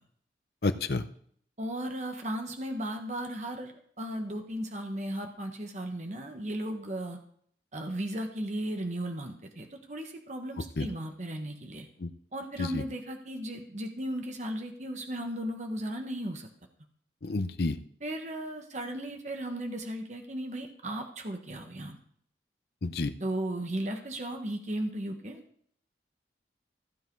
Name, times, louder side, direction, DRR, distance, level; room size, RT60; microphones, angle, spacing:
voice 1, 0.6-1.0 10.8-10.9 12.0-12.1 12.6-12.8 17.2-17.8 22.8-23.1, left 3 dB, 60° left, 10 dB, 0.7 m, -30 dB
voice 2, 1.6-7.2 7.7-11.9 12.3-16.5 18.0-22.0 23.2-25.4, right 1 dB, 40° right, 4 dB, 1.2 m, -36 dB
15.0 x 7.6 x 4.6 m, 0.63 s
head